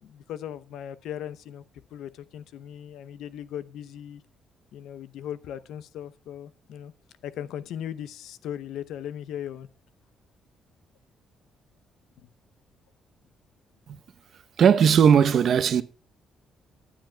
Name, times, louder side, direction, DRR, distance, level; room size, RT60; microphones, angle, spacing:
voice 1, 0.0-1.6 1.9-4.2 4.7-6.9 7.2-9.7 12.2-12.3, left 10 dB, 80° left, 0.7 m, -38 dB
voice 2, 14.6-15.8, right 7 dB, 60° right, 0.8 m, -18 dB
19.5 x 10.0 x 2.3 m
cardioid pair, 90°, 0 cm